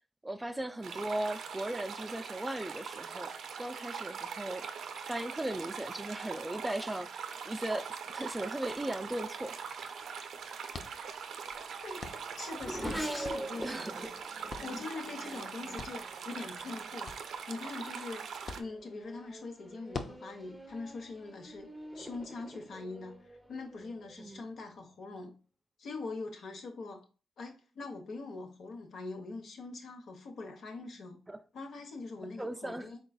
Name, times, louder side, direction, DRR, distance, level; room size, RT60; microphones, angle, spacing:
voice 1, 0.2-3.3 3.6-4.7 5.1-7.1 7.5-9.6 13.6-14.1 24.2-24.5 31.3-31.4 32.4-32.9, right 1 dB, 15° right, 0.4 m, -37 dB
sound 1, 0.8-18.6, right 6 dB, 75° right, 0.5 m, -42 dB
sound 2, 8.1-22.2, left 4 dB, 50° left, 0.6 m, -50 dB
Race car auto racing / Accelerating revving vroom, 10.9-16.8 17.6-18.0 18.4-24.3, equal, 5° left, 0.8 m, -45 dB
voice 2, 12.4-14.1 14.6-17.1 17.5-18.3 18.5-21.7 21.9-25.3 25.8-27.0 27.4-31.2 31.5-33.0, left 3 dB, 70° left, 1.0 m, -43 dB
3.9 x 3.8 x 2.3 m
cardioid pair, 80°, 0 cm